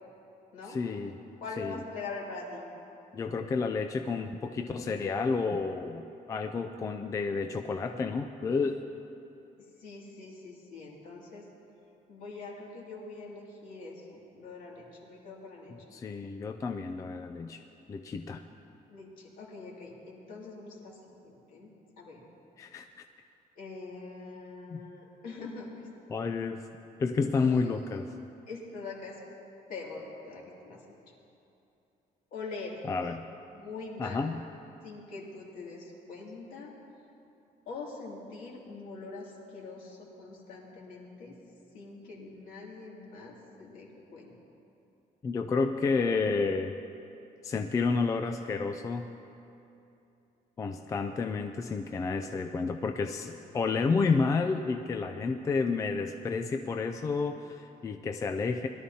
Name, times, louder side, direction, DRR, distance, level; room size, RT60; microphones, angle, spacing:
voice 1, 0.7-1.2 1.6-1.8 3.1-8.8 15.9-17.6 17.9-18.4 22.6-23.0 24.7-24.8 26.1-26.6 27.0-28.1 32.9-33.2 34.0-34.4 45.2-46.7 47.4-49.1 50.6-58.7, left 4 dB, 20° left, 6 dB, 0.3 m, -30 dB
voice 2, 1.4-2.7 9.8-11.4 12.1-15.7 18.9-22.3 23.6-25.9 27.3-27.7 28.5-29.2 29.7-30.8 32.3-32.8 33.5-34.3 34.8-36.7 37.7-41.3 41.7-44.4, left 3 dB, 60° left, -3 dB, 2.5 m, -43 dB
21.0 x 12.5 x 2.8 m, 2.8 s
cardioid pair, 170°, 16 cm